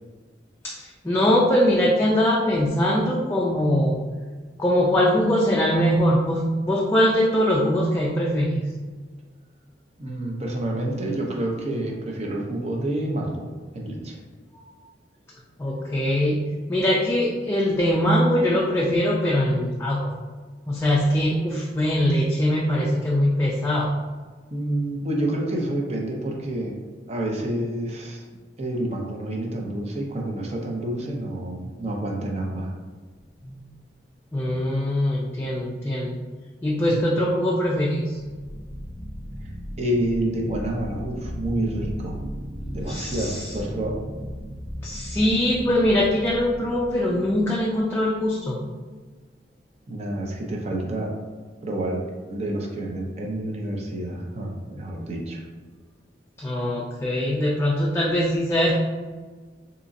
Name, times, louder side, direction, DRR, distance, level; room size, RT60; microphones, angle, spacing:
voice 1, 0.6-4.0 4.6-8.6 14.7-14.8 15.6-20.1 20.7-23.9 34.3-36.2 36.6-38.2 42.9-43.6 44.8-48.6 56.4-58.7, equal, 15° left, -4 dB, 0.3 m, -22 dB
voice 2, 10.0-13.5 13.7-14.2 24.5-26.8 27.1-28.2 28.6-32.7 36.8-37.0 39.8-42.2 42.7-44.0 49.9-51.1 51.6-55.4, right 1 dB, 35° right, 0 dB, 0.6 m, -28 dB
sound 1, 33.2-33.7 38.1-48.3, equal, 30° left, 0.7 m, -36 dB
3.8 x 2.9 x 2.5 m, 1.4 s
head